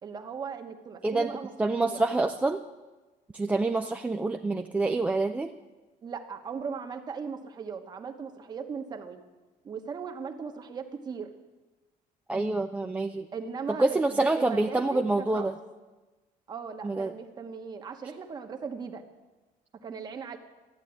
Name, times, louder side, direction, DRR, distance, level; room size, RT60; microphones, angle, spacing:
voice 1, 0.0-1.5 1.8-2.0 6.0-9.2 9.6-11.3 13.3-15.5 16.5-19.0 19.7-20.4, right 6 dB, 25° right, 6 dB, 1.1 m, -38 dB
voice 2, 1.0-2.6 3.3-5.5 12.3-13.3 13.8-15.6 16.8-17.1, right 2 dB, 10° right, 5 dB, 0.4 m, -27 dB
13.5 x 9.1 x 9.7 m, 1.2 s
cardioid pair, 170°, 15 cm